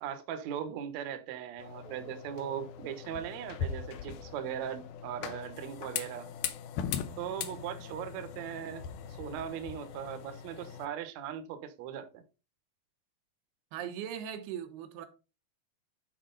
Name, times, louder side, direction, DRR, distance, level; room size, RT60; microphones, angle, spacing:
voice 1, 0.0-6.3 7.2-8.8 9.1-12.2, right 9 dB, 70° right, 1.8 m, -39 dB
sound 1, 1.6-10.9, left 8 dB, 75° left, 2.0 m, -40 dB
voice 2, 13.7-15.1, right 9 dB, 85° right, 3.1 m, -39 dB
10.0 x 4.7 x 3.9 m
omnidirectional pair, 4.4 m